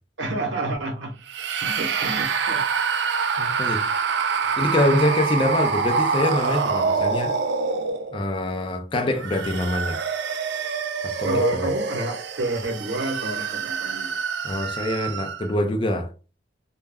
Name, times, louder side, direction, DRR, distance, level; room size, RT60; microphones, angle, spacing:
voice 1, 0.2-1.1 1.6-2.6 4.4-4.5 11.2-14.2, right 2 dB, 85° right, 0.8 m, -29 dB
sound 1, 1.3-8.3 9.0-15.6, right 5 dB, 70° right, 0.3 m, -26 dB
voice 2, 3.4-3.9 4.6-7.3 8.1-10.0 11.0-11.4 14.4-16.1, left 1 dB, 25° left, 0.4 m, -24 dB
2.2 x 2.0 x 3.4 m
head